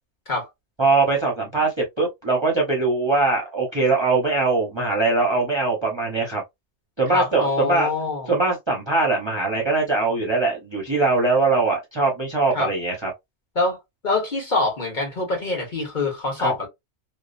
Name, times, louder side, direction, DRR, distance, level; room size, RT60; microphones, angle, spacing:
voice 1, 0.8-6.4 7.0-7.9 8.3-13.1 16.4-16.5, right 3 dB, 30° right, 0.6 m, -21 dB
voice 2, 7.1-8.3 12.5-12.7 13.5-13.8 14.0-16.7, left 3 dB, 45° left, 1.3 m, -24 dB
2.9 x 2.1 x 2.4 m
omnidirectional pair, 1.2 m